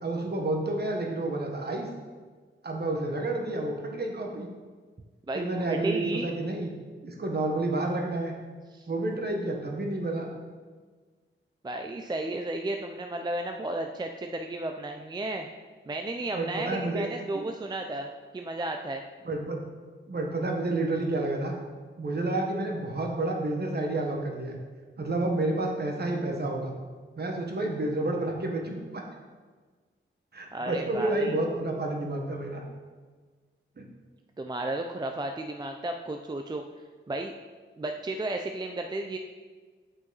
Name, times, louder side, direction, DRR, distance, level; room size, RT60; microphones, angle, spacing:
voice 1, 0.0-1.9 2.6-4.5 5.3-6.7 7.0-8.4 8.9-10.3 16.3-17.1 17.3-17.4 19.2-19.6 20.1-21.5 22.0-24.6 25.0-26.7 27.1-29.0 30.3-32.6 33.8-33.9, right 2 dB, 50° right, 1 dB, 1.3 m, -30 dB
voice 2, 5.3-6.3 8.7-8.9 11.6-15.5 15.9-19.0 30.5-31.3 34.4-36.6 37.1-37.3 37.8-39.2, right 2 dB, 20° right, 4 dB, 0.4 m, -33 dB
8.2 x 5.7 x 4.0 m, 1.4 s
wide cardioid pair, 105°, 21 cm